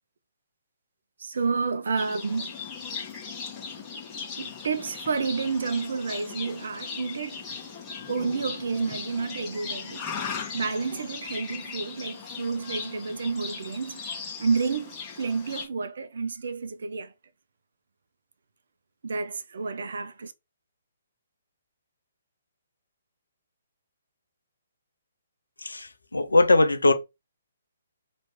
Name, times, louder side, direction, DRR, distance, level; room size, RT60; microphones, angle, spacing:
voice 1, 1.2-2.5 4.4-7.5 8.1-10.1 10.5-14.0 14.4-17.1 19.0-20.3, right 4 dB, 60° right, 0.6 m, -30 dB
Livestock farm animals working animals, 2.0-15.6, left 5 dB, 15° left, 1.4 m, -38 dB
voice 2, 25.6-26.9, left 2 dB, 75° left, 0.7 m, -21 dB
3.1 x 3.1 x 4.2 m
figure-of-eight pair, 130°, 0 cm